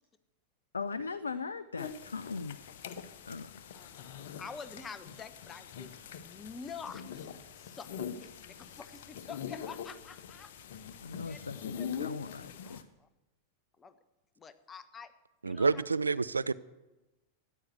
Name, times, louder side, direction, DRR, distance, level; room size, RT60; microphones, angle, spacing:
voice 1, 0.7-3.5 11.0-12.9, left 4 dB, 75° left, 0.5 m, -40 dB
sound 1, 1.8-12.8, left 7 dB, 55° left, 1.1 m, -43 dB
voice 2, 3.7-7.3 7.6-10.5 11.3-11.4 11.8-11.9 12.3-13.1 13.8-13.9 14.4-15.1 15.4-15.8, left 5 dB, 20° left, 1.1 m, -47 dB
voice 3, 15.4-16.5, right 4 dB, 80° right, 0.4 m, -28 dB
14.0 x 9.9 x 7.9 m
figure-of-eight pair, 90°, 0 cm